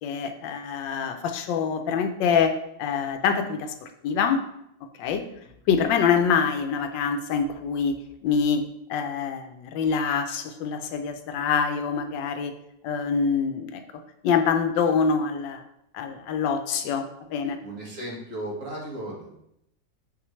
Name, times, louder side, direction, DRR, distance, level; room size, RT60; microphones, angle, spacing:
voice 1, 0.0-4.4 5.0-5.2 5.7-8.0 8.2-8.6 8.9-12.5 12.8-13.8 14.2-15.6 15.9-17.6, left 6 dB, 85° left, 7 dB, 1.3 m, -25 dB
voice 2, 17.6-19.3, right 1 dB, 45° right, -4 dB, 2.0 m, -35 dB
6.5 x 5.8 x 3.2 m, 0.78 s
omnidirectional pair, 2.0 m